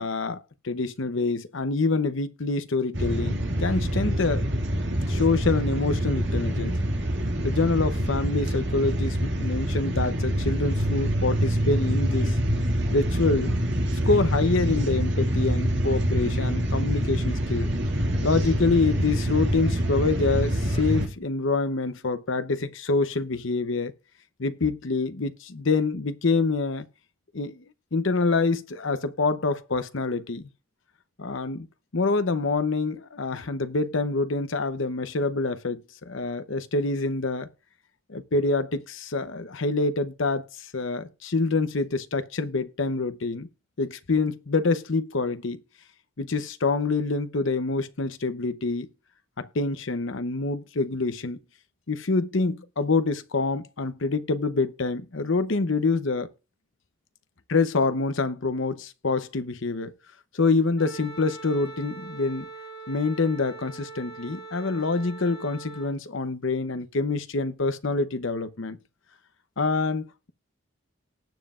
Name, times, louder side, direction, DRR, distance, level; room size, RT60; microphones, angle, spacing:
voice 1, 0.0-4.5 5.1-6.8 7.4-12.4 12.9-13.6 14.0-17.8 18.2-23.9 24.4-26.9 27.3-27.6 27.9-30.5 31.2-31.7 31.9-37.5 38.1-43.5 43.8-45.6 46.2-48.9 49.4-51.4 51.9-56.3 57.5-59.9 60.3-62.5 62.9-68.8 69.6-70.3, left 3 dB, 65° left, 0.8 m, -26 dB
sound 1, 2.9-21.1, equal, 55° right, 2.2 m, -26 dB
Wind instrument woodwind instrument, 60.8-65.9, right 3 dB, 50° left, 2.3 m, -42 dB
19.0 x 7.5 x 2.5 m
head